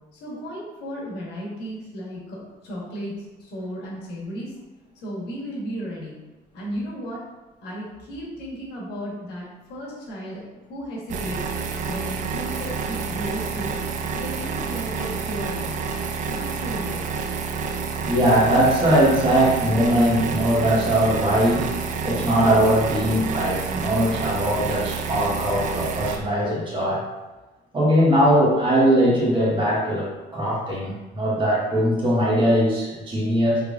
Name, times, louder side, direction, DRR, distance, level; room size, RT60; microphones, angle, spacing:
voice 1, 0.1-4.5 4.9-6.1 6.5-7.2 7.6-11.4 11.9-13.7 14.1-15.8 16.3-17.1, equal, 80° left, -4 dB, 1.2 m, -34 dB
Harsh Oscillating Drone, 11.1-26.2, right 5 dB, 50° right, 0.4 m, -29 dB
voice 2, 18.0-21.7 22.0-27.0 27.7-33.6, right 1 dB, 30° right, -5 dB, 1.2 m, -20 dB
3.4 x 3.3 x 2.4 m, 1.1 s
cardioid pair, 110°, 17 cm